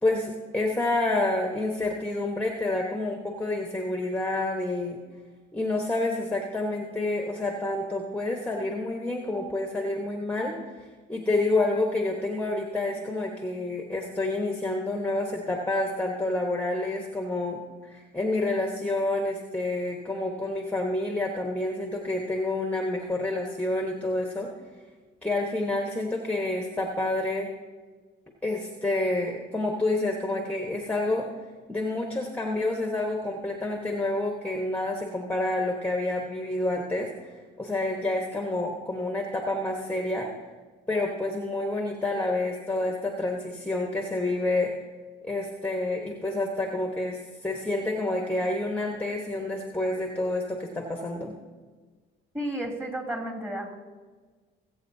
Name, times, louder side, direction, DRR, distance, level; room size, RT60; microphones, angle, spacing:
voice 1, 0.0-5.0 5.5-10.6 11.1-24.5 25.2-27.5 28.4-31.3 31.7-40.3 40.9-44.7 45.2-51.4, left 2 dB, 5° left, 1 dB, 1.3 m, -28 dB
voice 2, 52.3-53.8, right 1 dB, 15° right, -1 dB, 3.0 m, -32 dB
20.5 x 8.4 x 2.8 m, 1.4 s
cardioid pair, 90°, 20 cm